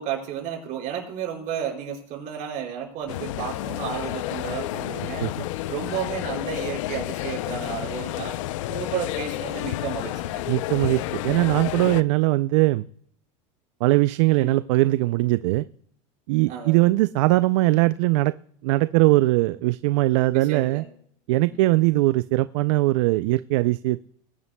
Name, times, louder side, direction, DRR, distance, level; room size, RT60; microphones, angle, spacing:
voice 1, 0.0-5.3 5.7-8.4 8.7-10.4 14.3-14.5 16.5-16.9 20.3-20.8 21.4-21.6, right 9 dB, 55° right, 0 dB, 4.9 m, -32 dB
sound 1, 3.1-12.0, left 15 dB, 80° left, 0.5 m, -30 dB
voice 2, 10.5-12.8 13.8-15.6 16.3-18.3 18.6-20.8 21.3-24.1, right 19 dB, 75° right, 15 dB, 0.4 m, -21 dB
20.5 x 11.0 x 2.2 m, 0.64 s
supercardioid pair, 120°, 16 cm